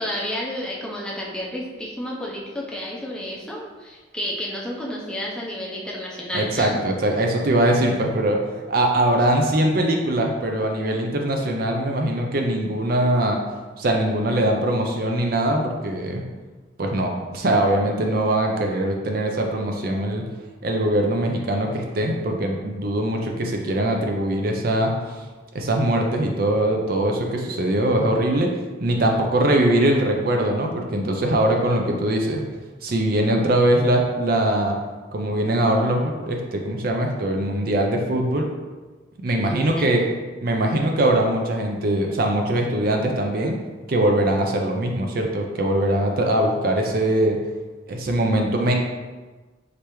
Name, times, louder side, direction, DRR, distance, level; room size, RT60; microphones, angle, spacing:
voice 1, 0.0-6.8 14.3-14.4 39.3-39.9, equal, 5° left, -4 dB, 0.5 m, -31 dB
voice 2, 6.3-8.4 8.7-13.4 13.8-16.2 16.8-20.2 20.6-24.9 25.5-28.5 28.8-32.4 32.8-34.8 35.1-38.5 39.2-40.0 40.4-43.6 43.9-47.4 47.9-48.7, right 1 dB, 45° right, 2 dB, 0.4 m, -22 dB
4.9 x 3.3 x 3.0 m, 1.3 s
head